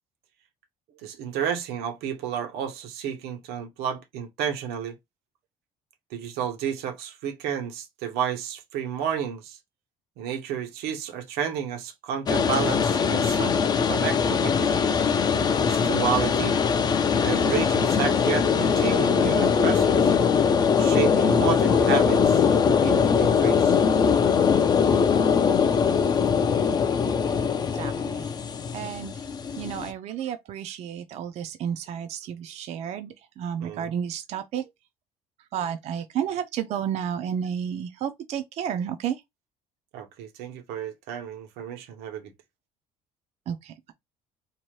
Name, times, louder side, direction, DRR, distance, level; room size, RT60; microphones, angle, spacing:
voice 1, 1.0-4.9 6.1-9.6 10.2-13.6 13.9-14.7 15.6-16.6 17.2-20.1 20.8-22.4 22.8-23.8 33.6-33.9 39.9-42.3, right 8 dB, 90° right, 0.8 m, -31 dB
sound 1, 12.3-29.9, left 6 dB, 25° left, 0.3 m, -22 dB
voice 2, 27.7-28.3 28.7-29.1 29.6-34.6 35.5-39.2 43.5-43.9, right 8 dB, 45° right, 0.4 m, -31 dB
2.7 x 2.1 x 3.0 m
cardioid pair, 145°, 16 cm